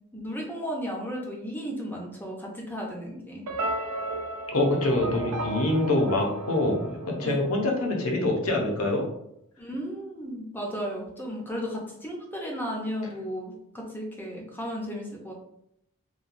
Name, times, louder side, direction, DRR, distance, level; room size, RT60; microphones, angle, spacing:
voice 1, 0.1-3.5 7.2-7.4 9.6-15.3, equal, 10° left, -1 dB, 0.5 m, -34 dB
sound 1, 3.5-7.8, right 2 dB, 90° right, 0.5 m, -34 dB
voice 2, 4.5-9.0, left 1 dB, 70° left, 1 dB, 0.7 m, -25 dB
3.0 x 2.2 x 2.5 m, 0.77 s
head